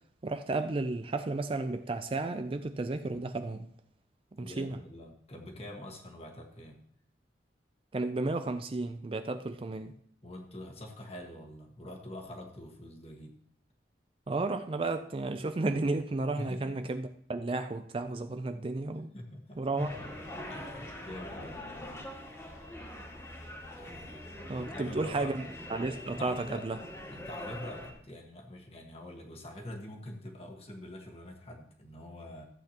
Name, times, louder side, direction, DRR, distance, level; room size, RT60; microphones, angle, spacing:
voice 1, 0.2-3.7 4.4-4.8 7.9-9.9 14.3-19.1 19.6-19.9 24.5-25.4 25.7-26.8, right 2 dB, 30° right, 0.4 m, -33 dB
voice 2, 4.4-6.8 10.2-13.4 16.4-16.7 19.1-19.7 20.5-21.8 24.6-25.3 26.1-26.7 27.1-32.4, left 1 dB, 35° left, 1.5 m, -45 dB
sound 1, 19.8-27.9, left 1 dB, 15° left, 1.8 m, -43 dB
14.5 x 8.2 x 2.9 m
head